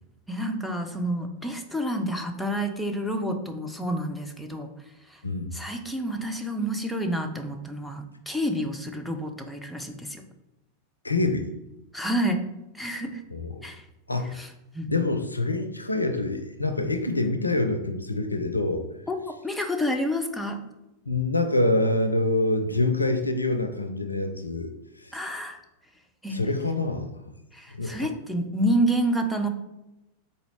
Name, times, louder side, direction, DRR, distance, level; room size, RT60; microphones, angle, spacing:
voice 1, 0.3-4.7 5.1-5.2 5.5-10.2 11.9-12.4 12.7-13.2 13.6-13.9 14.3-14.9 19.1-19.2 19.4-20.6 25.1-25.6 26.2-26.4 27.5-29.5, right 1 dB, ahead, 3 dB, 0.5 m, -29 dB
voice 2, 11.0-11.5 13.3-13.6 14.1-14.5 14.9-18.8 21.1-24.7 25.0-25.1 26.3-27.1 27.7-28.1, left 2 dB, 85° left, 7 dB, 0.4 m, -26 dB
3.9 x 2.7 x 3.2 m, 0.92 s
figure-of-eight pair, 90°, 0 cm